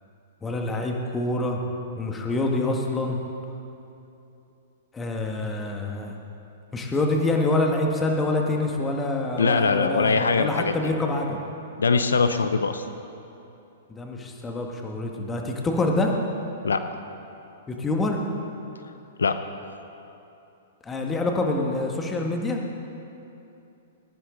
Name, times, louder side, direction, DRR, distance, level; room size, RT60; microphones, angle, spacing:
voice 1, 0.4-1.6 2.0-3.2 4.9-6.1 6.7-11.4 13.9-16.1 17.7-18.2 20.8-22.6, left 2 dB, 15° left, 1 dB, 1.7 m, -26 dB
voice 2, 9.4-10.8 11.8-12.9 16.6-16.9 19.2-19.4, left 4 dB, 85° left, 10 dB, 0.6 m, -22 dB
19.5 x 10.0 x 3.9 m, 2.8 s
hypercardioid pair, 120°, 0 cm